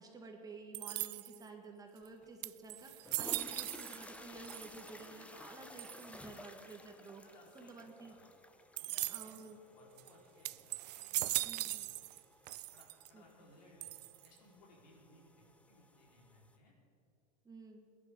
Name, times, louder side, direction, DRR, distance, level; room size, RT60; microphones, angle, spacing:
voice 1, 0.0-7.2 7.5-8.2 8.8-9.6 11.4-11.9 13.1-13.2 17.4-17.9, right 3 dB, 15° right, 3 dB, 1.7 m, -52 dB
sound 1, 0.7-1.5 2.1-2.2 2.4-4.2 4.4-5.1 5.8-6.2 8.8-9.4 10.0-10.1 10.4-12.2 12.5-13.1 13.8-14.4, right 17 dB, 75° right, 0.4 m, -39 dB
sound 2, 2.2-2.3 2.9-16.6, left 2 dB, 5° left, 0.8 m, -55 dB
voice 2, 7.2-8.3 8.8-9.4 9.7-12.0 12.5-13.9 14.2-16.7, left 1 dB, 80° left, -2 dB, 4.2 m, -63 dB
18.5 x 10.5 x 5.2 m, 2.6 s
hypercardioid pair, 115°, 21 cm